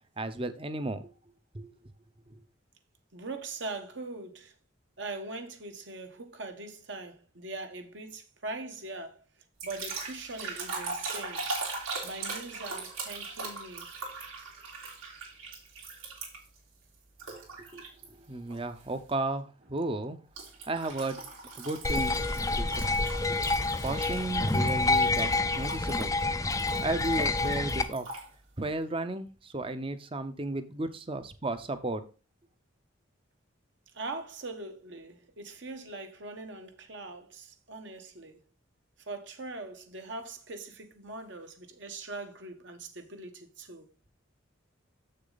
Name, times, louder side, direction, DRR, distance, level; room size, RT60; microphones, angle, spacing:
voice 1, 0.2-1.0 1.5-1.7 17.3-17.8 18.3-20.2 20.7-21.2 21.6-22.3 22.5-22.7 23.8-26.2 26.8-28.1 28.6-32.0, right 2 dB, 25° right, 0.7 m, -34 dB
voice 2, 3.1-4.5 5.0-9.2 9.6-11.5 12.0-13.9 33.9-38.4 39.1-43.9, right 3 dB, 60° right, 1.2 m, -41 dB
sound 1, 9.6-16.6 17.2-18.1 18.5-18.8 20.4-28.3, right 3 dB, 90° right, 3.3 m, -40 dB
sound 2, 21.8-27.8, left 3 dB, 15° left, 0.4 m, -28 dB
7.5 x 6.6 x 4.0 m
head